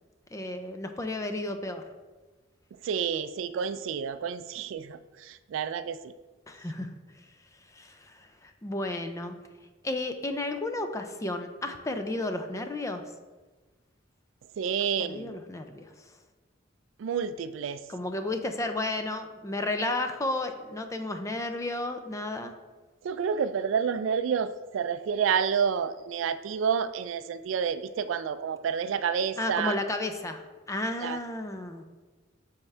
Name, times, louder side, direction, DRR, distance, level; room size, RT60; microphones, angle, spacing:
voice 1, 0.3-1.9 6.5-6.9 7.7-9.3 9.8-13.0 15.0-15.9 17.9-22.5 29.4-31.8, left 2 dB, 15° left, 7 dB, 0.4 m, -33 dB
voice 2, 2.8-6.1 14.6-15.4 17.0-17.9 23.0-29.8 31.0-31.2, right 7 dB, 80° right, 12 dB, 0.3 m, -29 dB
8.6 x 3.6 x 3.3 m, 1.2 s
head